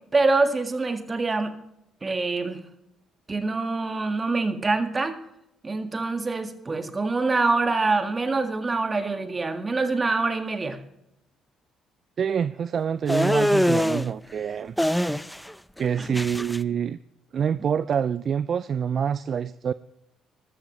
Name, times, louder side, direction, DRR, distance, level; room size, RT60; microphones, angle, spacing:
voice 1, 0.1-1.5 2.0-2.6 3.3-5.2 5.6-10.8 16.0-16.2, right 3 dB, 30° right, 7 dB, 1.8 m, -25 dB
voice 2, 12.2-14.7 15.8-17.0 17.3-19.7, right 7 dB, 50° right, 16 dB, 0.4 m, -26 dB
sound 1, 13.1-14.1 14.8-15.5 15.8-16.6, equal, 5° left, 0.6 m, -23 dB
14.0 x 13.0 x 3.2 m, 0.84 s
hypercardioid pair, 50°, 0 cm